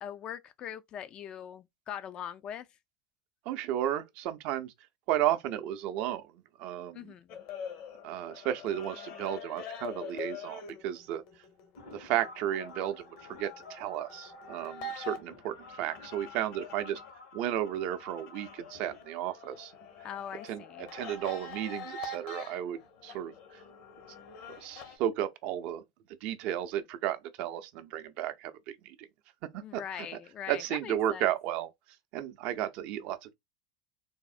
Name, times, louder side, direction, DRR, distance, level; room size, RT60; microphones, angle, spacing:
voice 1, 0.0-2.7 6.9-7.4 20.0-20.9 29.6-31.3, left 9 dB, 40° left, 0.3 m, -41 dB
voice 2, 3.5-4.7 5.1-6.3 6.6-7.1 8.0-11.2 11.9-17.0 17.3-19.7 20.4-23.6 24.5-25.8 26.2-29.0 29.5-30.1 30.5-31.7 32.1-33.3, right 11 dB, 55° right, 0.5 m, -33 dB
sound 1, 7.3-17.1 17.4-25.0, left 3 dB, 55° left, 0.9 m, -45 dB
sound 2, 11.7-20.3, left 5 dB, 75° left, 1.9 m, -51 dB
3.4 x 2.0 x 2.4 m
hypercardioid pair, 100°, 2 cm